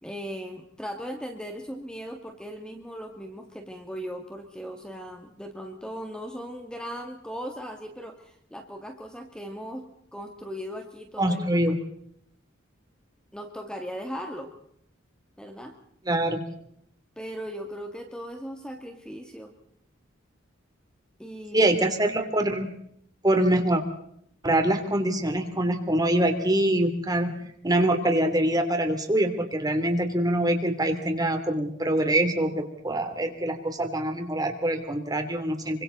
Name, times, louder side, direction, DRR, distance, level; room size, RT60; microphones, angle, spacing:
voice 1, 0.0-11.8 13.3-14.5 15.4-15.7 17.2-19.5 21.2-21.7, equal, 5° left, 4 dB, 2.1 m, -38 dB
voice 2, 11.2-11.7 16.1-16.4 21.5-22.7 23.2-23.8 24.4-27.4 27.6-35.8, right 1 dB, 20° right, 6 dB, 3.0 m, -24 dB
27.0 x 25.0 x 4.0 m, 0.69 s
head